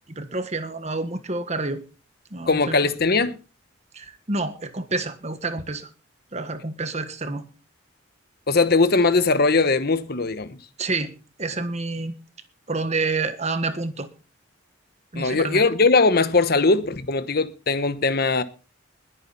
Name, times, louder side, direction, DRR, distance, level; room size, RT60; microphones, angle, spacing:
voice 1, 0.1-1.8 2.3-2.8 3.9-5.9 6.3-7.4 10.8-12.1 12.7-14.1 15.1-15.7, right 3 dB, 35° right, 1.5 m, -28 dB
voice 2, 2.5-3.4 8.5-10.6 15.1-18.4, left 3 dB, 50° left, 1.1 m, -20 dB
21.0 x 9.0 x 4.1 m
head